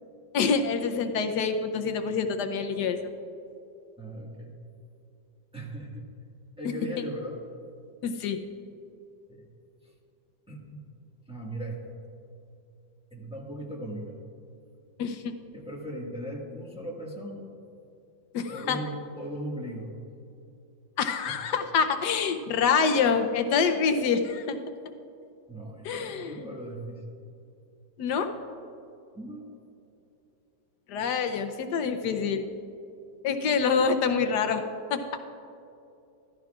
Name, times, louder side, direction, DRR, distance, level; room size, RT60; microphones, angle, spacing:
voice 1, 0.3-3.0 6.6-6.7 8.0-8.4 15.0-15.3 18.3-18.8 21.0-24.6 25.8-26.3 28.0-28.3 30.9-32.4 33.2-34.6 34.9-35.0, left 5 dB, 70° left, 7 dB, 1.1 m, -26 dB
voice 2, 4.0-4.5 5.5-6.0 6.6-7.4 9.3-9.5 10.5-10.8 11.3-11.9 13.1-14.1 15.5-17.5 18.5-19.9 21.3-21.4 25.5-27.0 29.1-29.5, right 1 dB, 5° right, -3 dB, 1.3 m, -38 dB
15.0 x 12.5 x 2.4 m, 2.7 s
omnidirectional pair, 2.1 m